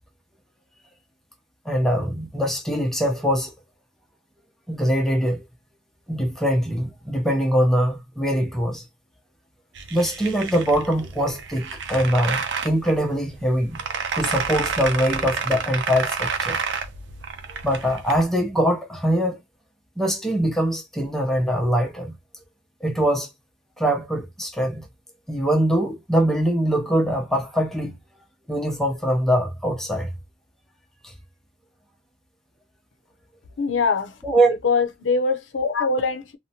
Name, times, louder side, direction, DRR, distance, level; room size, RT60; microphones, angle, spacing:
voice 1, 1.7-3.5 4.7-5.4 6.1-8.8 9.9-13.8 14.1-16.6 17.5-19.4 20.0-22.2 22.8-23.3 23.8-24.9 25.3-28.0 28.5-30.1 31.0-31.1 34.2-34.5, equal, ahead, 0.6 m, -23 dB
sound 1, 9.7-18.2, right 5 dB, 65° right, 0.5 m, -30 dB
voice 2, 33.6-34.1 34.4-36.4, left 4 dB, 80° left, 0.5 m, -23 dB
2.8 x 2.1 x 2.7 m
head